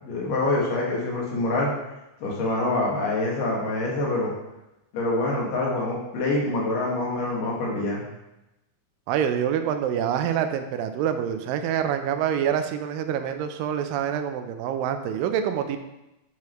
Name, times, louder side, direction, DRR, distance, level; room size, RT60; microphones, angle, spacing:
voice 1, 0.0-1.7 2.2-4.3 4.9-8.0, left 2 dB, 75° left, -4 dB, 3.1 m, -25 dB
voice 2, 9.1-15.8, right 9 dB, 85° right, 8 dB, 2.3 m, -26 dB
8.3 x 4.7 x 3.1 m, 0.94 s
omnidirectional pair, 3.9 m